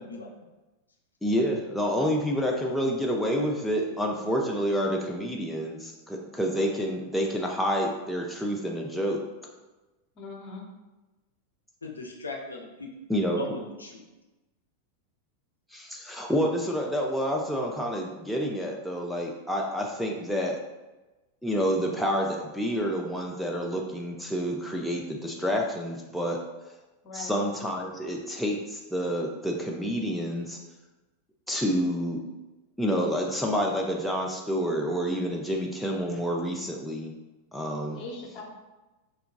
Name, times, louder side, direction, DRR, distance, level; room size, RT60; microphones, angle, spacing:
voice 1, 1.2-9.2 13.1-13.4 15.7-20.6 21.4-26.4 27.1-30.6 31.5-32.2 32.8-37.1 37.5-38.0, equal, 5° left, -1 dB, 0.3 m, -28 dB
voice 2, 10.1-10.6 27.0-27.4 37.9-38.4, left 3 dB, 35° left, 0 dB, 0.7 m, -40 dB
voice 3, 11.8-12.9 13.3-14.0, left 2 dB, 80° left, 0 dB, 0.4 m, -38 dB
3.3 x 2.8 x 2.4 m, 1.1 s
figure-of-eight pair, 90°, 0 cm